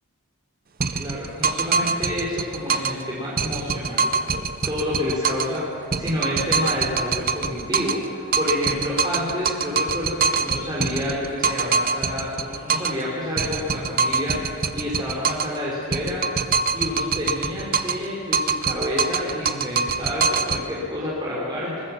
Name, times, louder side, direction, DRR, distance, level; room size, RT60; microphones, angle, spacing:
sound 1, 0.8-3.0 3.4-5.6 5.9-8.1 8.3-13.0 13.4-15.6 15.9-18.1 18.3-20.6, right 5 dB, 40° right, 0.8 m, -24 dB
voice 1, 0.9-4.1 4.6-16.3 16.7-21.8, left 1 dB, 20° right, -6 dB, 3.8 m, -29 dB
22.0 x 19.5 x 7.3 m, 2.7 s
head